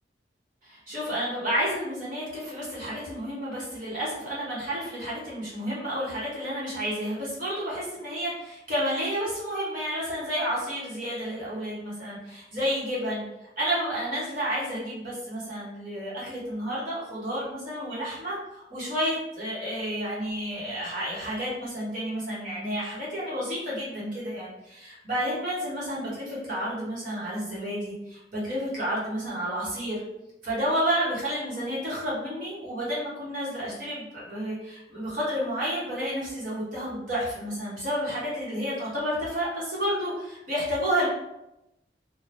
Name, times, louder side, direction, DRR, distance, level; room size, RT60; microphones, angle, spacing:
voice 1, 0.6-30.0 30.4-41.1, equal, 50° right, -8 dB, 1.1 m, -31 dB
2.7 x 2.3 x 3.3 m, 0.89 s
head